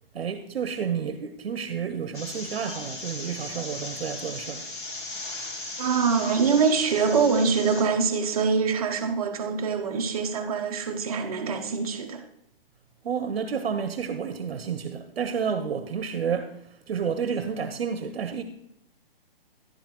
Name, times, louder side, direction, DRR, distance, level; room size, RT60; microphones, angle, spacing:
voice 1, 0.1-4.7 13.0-18.4, right 7 dB, 85° right, 0.9 m, -30 dB
sound 1, 2.1-7.8, left 2 dB, 55° left, 2.2 m, -37 dB
voice 2, 5.8-12.2, right 5 dB, 40° right, 0.9 m, -24 dB
11.0 x 10.0 x 3.0 m
hypercardioid pair, 170°, 30 cm